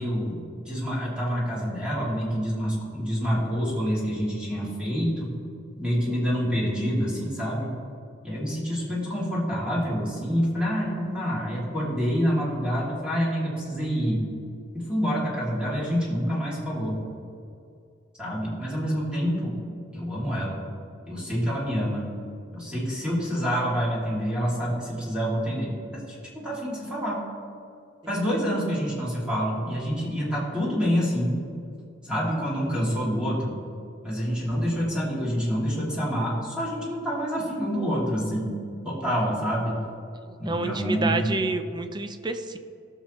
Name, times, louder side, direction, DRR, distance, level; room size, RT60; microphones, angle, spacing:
voice 1, 0.0-5.3 5.8-7.7 8.2-14.2 14.7-17.0 18.2-19.6 19.9-20.7 21.1-22.1 22.5-25.7 26.1-27.2 28.1-31.4 32.0-33.6 34.0-38.6 38.8-39.8 40.4-41.3, equal, 5° right, -7 dB, 2.7 m, -27 dB
voice 2, 40.5-42.6, right 2 dB, 25° right, 8 dB, 0.6 m, -28 dB
18.0 x 6.7 x 3.1 m, 2.4 s
head